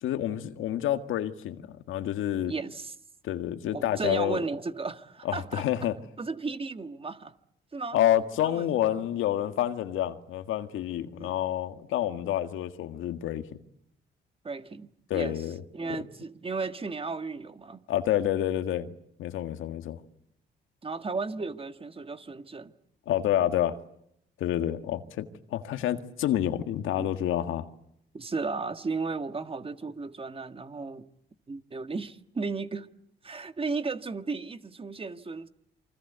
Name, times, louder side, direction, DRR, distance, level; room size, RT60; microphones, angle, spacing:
voice 1, 0.0-2.5 3.2-4.4 5.3-5.9 7.9-13.5 15.1-15.6 15.9-16.0 17.9-18.9 19.2-20.0 23.1-23.8 24.4-27.7, left 12 dB, 85° left, 1.8 m, -28 dB
voice 2, 2.5-2.9 3.7-5.6 6.2-7.4 7.7-8.0 8.4-8.7 11.1-11.3 14.4-15.4 15.7-17.9 20.8-22.7 27.0-27.1 28.1-31.1 31.5-32.9 33.2-35.5, right 4 dB, 30° right, 1.8 m, -34 dB
28.0 x 24.5 x 8.1 m
cardioid pair, 90°, 20 cm